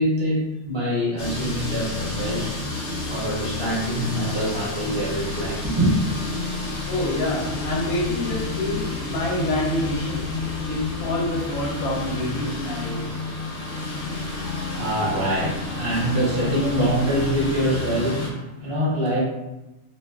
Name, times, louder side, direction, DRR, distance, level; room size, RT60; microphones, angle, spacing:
voice 1, 0.0-2.5 3.1-6.0 14.3-19.2, equal, 40° right, -5 dB, 0.4 m, -24 dB
sound 1, 1.2-18.3, left 3 dB, 60° left, 0.8 m, -30 dB
voice 2, 6.9-13.2, left 1 dB, 90° left, -3 dB, 1.1 m, -27 dB
2.4 x 2.3 x 2.3 m, 0.96 s
omnidirectional pair, 1.5 m